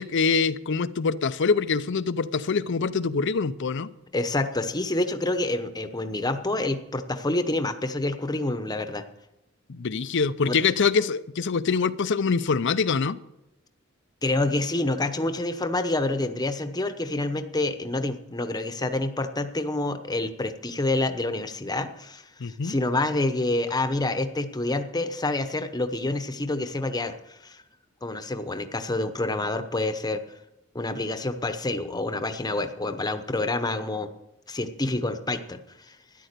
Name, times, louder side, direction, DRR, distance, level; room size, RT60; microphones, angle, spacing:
voice 1, 0.0-3.9 9.7-13.2 22.4-22.7, left 5 dB, 60° left, 15 dB, 0.6 m, -24 dB
voice 2, 4.1-9.0 10.4-10.6 14.2-27.6 28.0-30.2 30.7-34.1 34.5-35.6 35.9-36.0, left 2 dB, 20° left, 8 dB, 0.9 m, -27 dB
13.0 x 10.5 x 6.7 m, 0.89 s
head